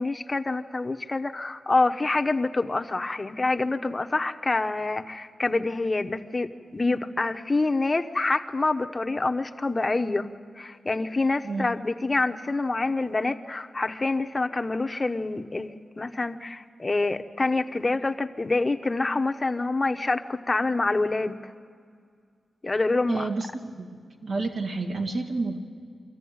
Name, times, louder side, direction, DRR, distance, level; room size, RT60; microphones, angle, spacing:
voice 1, 0.0-10.3 10.6-21.4 22.6-23.3, left 3 dB, 30° left, 7 dB, 1.0 m, -26 dB
voice 2, 23.1-23.9 24.2-25.6, right 3 dB, 75° right, 2 dB, 2.2 m, -29 dB
25.0 x 14.0 x 9.4 m, 2.1 s
cardioid pair, 65°, 0 cm